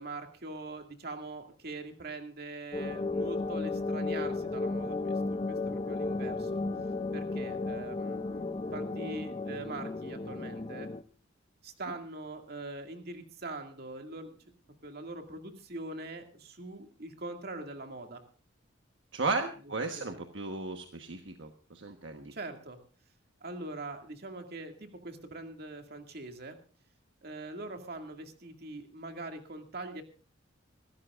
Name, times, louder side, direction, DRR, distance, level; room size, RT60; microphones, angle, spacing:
voice 1, 0.0-6.6 7.1-10.9 11.6-14.3 14.8-18.2 20.0-20.2 22.3-22.8 23.4-26.6 27.2-30.0, right 2 dB, 55° right, 5 dB, 2.2 m, -43 dB
sound 1, 2.7-11.0, left 3 dB, 30° left, 0.6 m, -34 dB
voice 2, 19.1-22.3, right 3 dB, 70° right, 5 dB, 1.2 m, -35 dB
26.0 x 13.0 x 2.5 m, 0.38 s
head